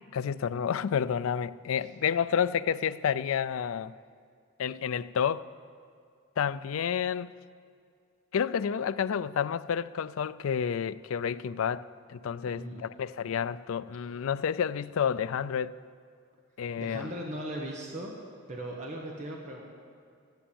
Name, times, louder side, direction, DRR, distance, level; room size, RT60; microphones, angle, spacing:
voice 1, 0.1-3.9 4.6-5.5 6.4-7.3 8.3-15.8 16.6-17.1, left 7 dB, 90° left, 0.4 m, -30 dB
voice 2, 12.5-12.8 16.8-18.1 18.5-19.6, right 1 dB, 35° right, 1.3 m, -38 dB
14.0 x 11.5 x 7.1 m
head